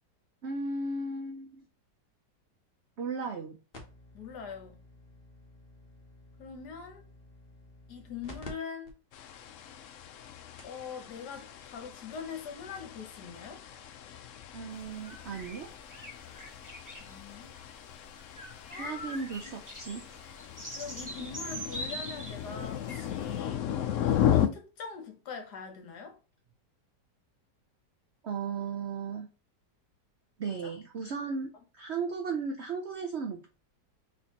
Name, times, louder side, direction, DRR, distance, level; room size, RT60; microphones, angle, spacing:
voice 1, 0.4-1.7 3.0-3.6 14.5-15.7 18.8-20.1 28.2-29.3 30.4-33.5, right 4 dB, 65° right, 0.6 m, -35 dB
sound 1, 3.7-8.5 8.9-9.0 9.6-9.7 10.3-10.4 10.6-10.8 12.1-12.2, left 2 dB, 35° left, 1.1 m, -51 dB
voice 2, 4.1-4.8 6.4-7.1 7.9-8.9 10.6-13.6 17.0-17.6 18.7-19.2 20.7-23.6 24.0-26.2 30.4-30.7, left 5 dB, 65° left, 1.6 m, -42 dB
sound 2, 9.1-24.5, left 10 dB, 85° left, 0.6 m, -35 dB
sound 3, 14.8-23.4, right 1 dB, 15° right, 0.8 m, -44 dB
4.3 x 4.1 x 2.9 m
omnidirectional pair, 1.9 m